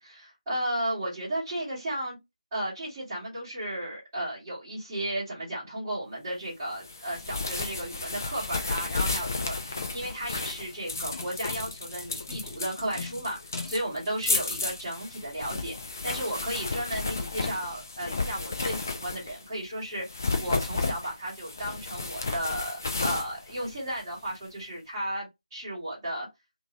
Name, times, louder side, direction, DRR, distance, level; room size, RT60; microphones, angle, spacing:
voice 1, 0.1-2.2 2.5-20.1 20.4-26.3, right 1 dB, 10° right, 1.1 m, -34 dB
sound 1, 6.8-19.5 20.0-24.3, left 3 dB, 25° left, 0.4 m, -33 dB
2.7 x 2.6 x 2.8 m
figure-of-eight pair, 165°, 4 cm